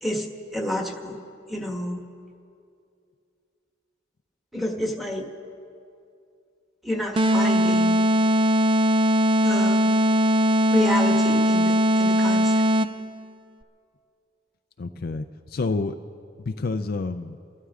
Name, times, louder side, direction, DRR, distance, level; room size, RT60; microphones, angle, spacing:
voice 1, 0.0-1.2 1.5-2.0 4.5-5.3 6.8-8.0 9.4-9.9 10.7-12.6, left 1 dB, ahead, 1 dB, 1.5 m, -29 dB
sound 1, 7.2-13.1, equal, 25° right, 0.3 m, -20 dB
voice 2, 14.8-16.0 16.4-17.4, left 3 dB, 50° left, 8 dB, 0.4 m, -29 dB
29.5 x 12.5 x 3.7 m, 2.5 s
head